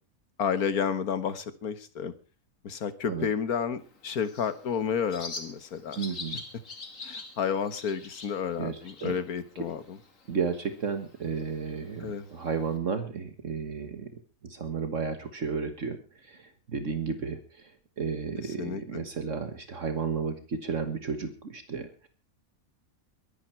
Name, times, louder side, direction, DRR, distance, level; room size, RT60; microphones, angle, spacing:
voice 1, 0.4-2.1 2.6-6.0 7.0-10.0 12.0-12.3 18.6-19.1, left 7 dB, 85° left, 13 dB, 1.9 m, -31 dB
Bird, 3.8-12.8, left 3 dB, 65° left, 2.9 m, -45 dB
voice 2, 6.0-6.4 8.6-9.1 10.3-14.1 14.4-17.7 18.0-22.1, right 5 dB, 60° right, 9 dB, 1.8 m, -33 dB
22.5 x 11.0 x 4.5 m, 0.36 s
omnidirectional pair, 1.5 m